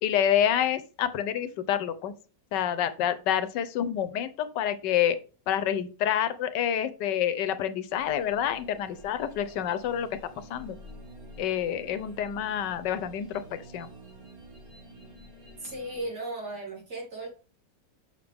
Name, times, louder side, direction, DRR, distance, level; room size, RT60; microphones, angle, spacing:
voice 1, 0.0-2.1 2.5-5.2 5.5-10.2 10.5-10.8 11.4-13.9, left 10 dB, 80° left, 12 dB, 1.4 m, -28 dB
sound 1, 8.0-16.1, right 1 dB, 85° right, 4.0 m, -49 dB
voice 2, 15.6-17.3, right 2 dB, 65° right, -3 dB, 3.9 m, -36 dB
6.6 x 6.3 x 3.5 m, 0.35 s
omnidirectional pair, 1.9 m